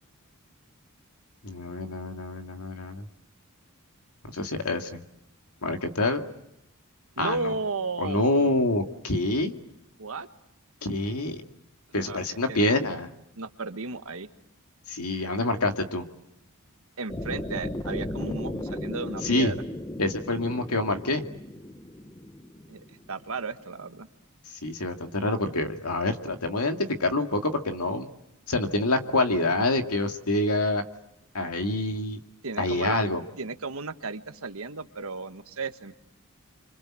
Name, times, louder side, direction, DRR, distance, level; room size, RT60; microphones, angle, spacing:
voice 1, 1.4-3.1 4.3-5.0 5.6-6.2 7.2-7.5 8.0-9.6 10.8-11.4 11.9-13.1 14.9-16.1 19.2-19.5 20.0-21.2 24.5-28.1 28.5-30.8 31.3-32.2 32.6-33.2, left 2 dB, 80° left, 6 dB, 2.3 m, -26 dB
voice 2, 7.2-8.3 10.0-10.3 11.9-12.6 13.4-14.3 17.0-19.6 22.7-24.1 32.4-33.0 33.4-35.9, right 3 dB, 70° right, 10 dB, 1.4 m, -34 dB
sound 1, 17.1-23.2, left 1 dB, 15° left, 1.0 m, -36 dB
29.5 x 25.5 x 7.6 m, 0.83 s
head